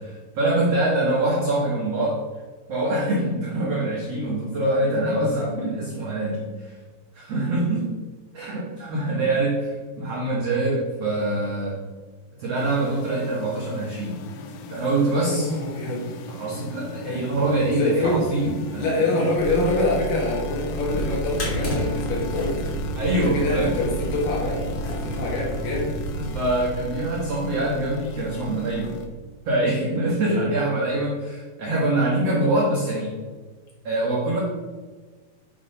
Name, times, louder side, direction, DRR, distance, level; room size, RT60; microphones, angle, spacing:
voice 1, 0.0-2.2 2.7-6.8 7.1-7.9 8.3-9.7 10.0-11.8 12.4-14.2 14.7-15.5 16.3-19.3 22.9-23.7 25.0-25.1 26.2-29.0 29.4-33.2 33.8-34.4, right 2 dB, 75° right, -3 dB, 1.4 m, -24 dB
sound 1, 12.6-29.1, equal, 85° left, 2.7 m, -34 dB
voice 2, 15.2-16.1 17.0-17.3 17.7-18.2 18.8-22.7 23.2-25.9 30.3-30.6 32.3-32.4, left 2 dB, 65° left, -4 dB, 3.5 m, -25 dB
sound 2, 20.7-26.6, equal, 40° left, 2.5 m, -32 dB
8.2 x 3.8 x 5.3 m, 1.4 s
omnidirectional pair, 4.4 m